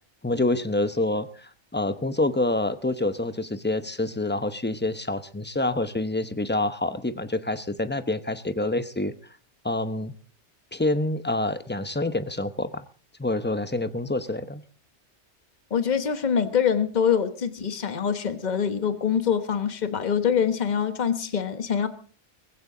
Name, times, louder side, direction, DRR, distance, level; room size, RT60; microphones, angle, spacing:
voice 1, 0.2-9.1 9.6-10.1 10.7-12.8 13.2-14.6, left 2 dB, 10° left, 11 dB, 0.7 m, -27 dB
voice 2, 15.7-21.9, left 7 dB, 40° left, 9 dB, 1.3 m, -24 dB
19.5 x 16.0 x 3.8 m, 0.41 s
omnidirectional pair, 1.2 m